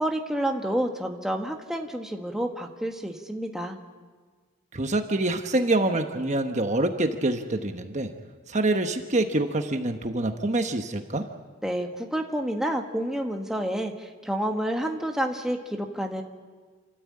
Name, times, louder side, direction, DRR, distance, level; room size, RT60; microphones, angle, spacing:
voice 1, 0.0-3.8 11.6-16.2, right 1 dB, 5° right, 2 dB, 1.4 m, -29 dB
voice 2, 4.7-8.1 8.5-11.3, right 2 dB, 35° right, 6 dB, 1.1 m, -26 dB
28.0 x 13.5 x 8.6 m, 1.5 s
head